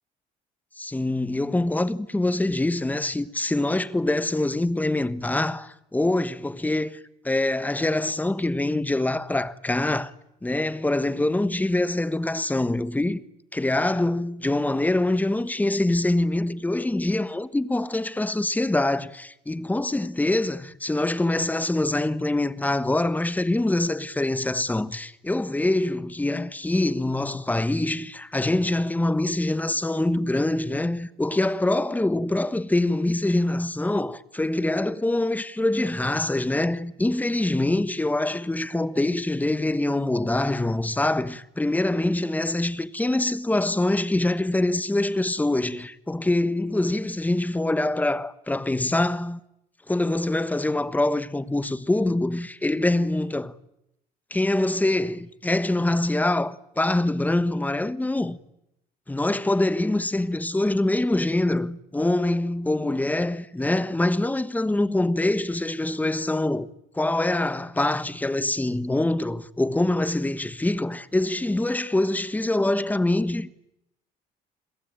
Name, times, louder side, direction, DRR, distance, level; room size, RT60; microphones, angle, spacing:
voice 1, 0.8-10.1 10.4-13.2 13.5-49.4 49.9-53.5 54.3-58.4 59.1-66.7 67.0-73.5, left 2 dB, 10° left, 1.3 m, -24 dB
29.0 x 22.0 x 9.0 m
cardioid pair, 110°, 17 cm